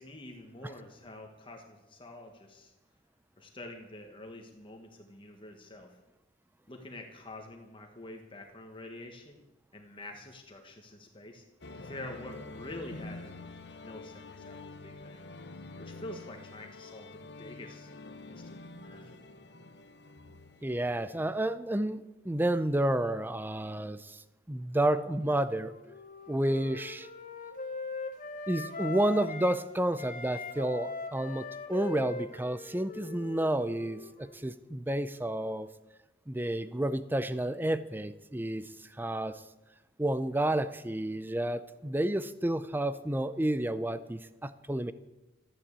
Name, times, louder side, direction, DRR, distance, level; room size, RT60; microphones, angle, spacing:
voice 1, 0.0-2.7 3.4-6.0 6.7-9.4 9.7-11.4 11.8-13.4 13.8-15.3 15.8-17.9 18.3-19.3, left 1 dB, 25° left, 2 dB, 1.6 m, -47 dB
sound 1, 11.6-21.5, left 2 dB, 60° left, 1.0 m, -47 dB
voice 2, 20.6-24.2 24.5-25.7 26.3-27.1 28.5-35.7 36.3-38.7 39.0-39.4 40.0-44.9, right 1 dB, 10° right, 13 dB, 0.5 m, -30 dB
Wind instrument woodwind instrument, 25.3-29.7 30.0-34.5, left 3 dB, 40° left, 1.7 m, -41 dB
14.5 x 10.5 x 8.2 m, 1.0 s
head